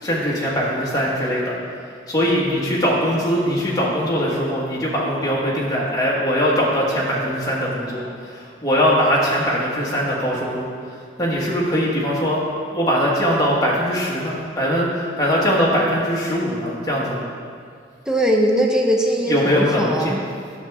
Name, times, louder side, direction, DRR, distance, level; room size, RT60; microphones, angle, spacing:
voice 1, 0.0-1.5 2.1-10.7 11.2-12.4 12.7-17.2 19.3-20.2, equal, 20° left, -5 dB, 1.6 m, -21 dB
voice 2, 18.1-20.2, right 1 dB, 5° right, 0 dB, 0.6 m, -20 dB
10.0 x 6.7 x 3.6 m, 2.2 s
head